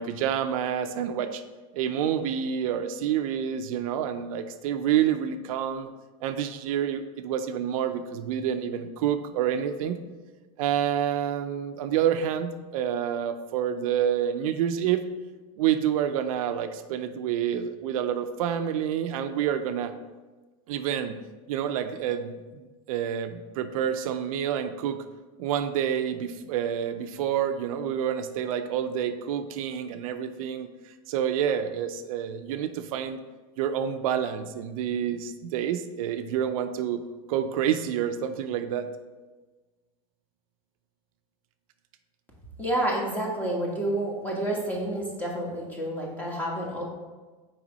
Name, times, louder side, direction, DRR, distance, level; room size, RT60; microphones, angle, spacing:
voice 1, 0.0-1.4 1.7-5.9 6.2-10.0 10.6-15.0 15.6-19.9 20.7-21.2 21.5-25.0 25.4-33.2 33.6-37.0 37.3-38.9, right 9 dB, 70° right, 8 dB, 0.5 m, -28 dB
voice 2, 42.6-46.8, right 1 dB, 10° left, -2 dB, 1.5 m, -29 dB
5.9 x 4.9 x 4.0 m, 1.3 s
supercardioid pair, 140°, 18 cm